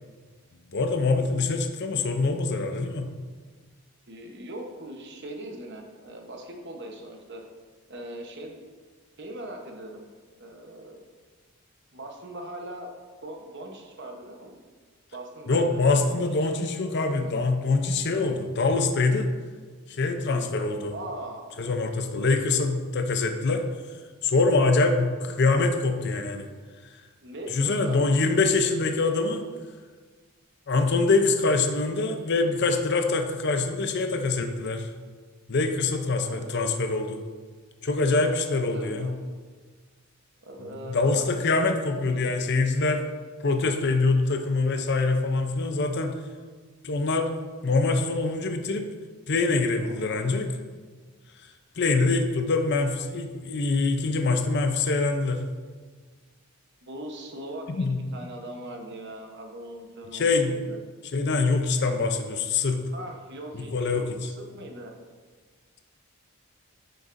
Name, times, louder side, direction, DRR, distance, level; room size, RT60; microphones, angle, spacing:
voice 1, 0.7-3.1 15.5-19.3 19.9-20.9 21.6-23.6 24.2-26.5 27.5-29.5 30.7-34.9 35.5-37.2 37.8-39.1 40.9-43.0 43.4-46.2 46.8-47.3 47.6-48.9 49.3-50.5 51.8-55.4 57.7-58.0 60.1-60.6 61.1-62.8 63.5-64.1, left 3 dB, 50° left, 6 dB, 0.6 m, -24 dB
voice 2, 4.1-7.4 7.9-8.6 9.2-10.0 10.4-11.0 11.9-12.9 13.2-14.6 15.1-16.5 20.9-21.5 27.2-28.1 36.1-36.5 38.3-39.1 40.4-41.3 49.8-50.2 56.8-60.8 62.9-64.9, right 1 dB, 50° right, 2 dB, 1.0 m, -40 dB
9.0 x 6.7 x 2.6 m, 1.5 s
head